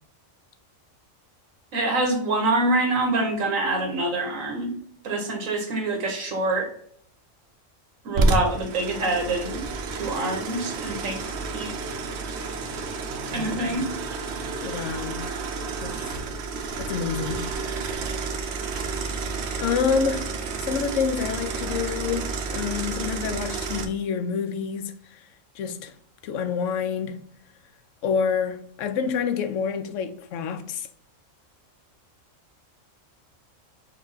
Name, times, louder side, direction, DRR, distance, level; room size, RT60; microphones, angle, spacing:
voice 1, 1.7-4.7 5.0-6.7 8.0-9.6 9.9-11.2 11.5-11.7 13.3-13.9, right 2 dB, 85° right, 1.5 m, -25 dB
sound 1, 8.1-23.9, right 3 dB, 60° right, 0.9 m, -30 dB
voice 2, 13.3-13.8 14.6-15.3 15.8-15.9 16.8-17.5 19.6-20.3 20.6-25.2 25.6-25.9 26.2-27.2 28.0-30.9, left 6 dB, 75° left, 0.9 m, -28 dB
4.6 x 2.3 x 3.9 m
omnidirectional pair, 1.3 m